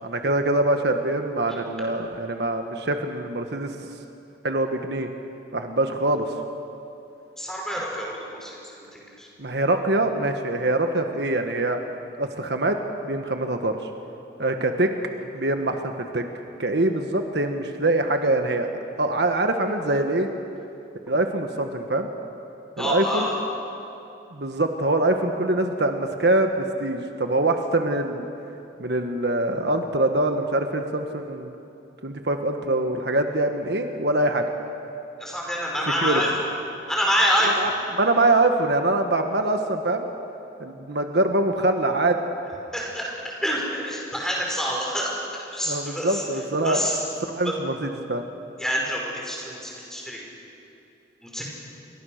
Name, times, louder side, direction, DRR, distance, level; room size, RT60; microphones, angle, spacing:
voice 1, 0.0-3.7 4.4-5.1 5.5-6.3 9.4-11.8 12.2-12.8 13.0-13.8 14.4-14.9 15.3-16.2 16.6-18.7 19.0-20.3 21.1-22.1 22.8-23.3 24.3-28.3 28.8-31.5 32.0-34.4 36.0-36.2 37.6-40.1 40.6-42.2 45.7-46.9 47.3-48.2, right 2 dB, 65° right, 5 dB, 1.4 m, -24 dB
voice 2, 7.4-8.6 8.9-9.3 22.8-23.3 35.2-36.5 36.9-37.7 42.7-46.2 46.6-47.0 47.4-47.5 48.6-50.3 51.2-51.4, equal, 5° left, -2 dB, 5.5 m, -27 dB
29.0 x 23.0 x 6.6 m, 2.8 s
head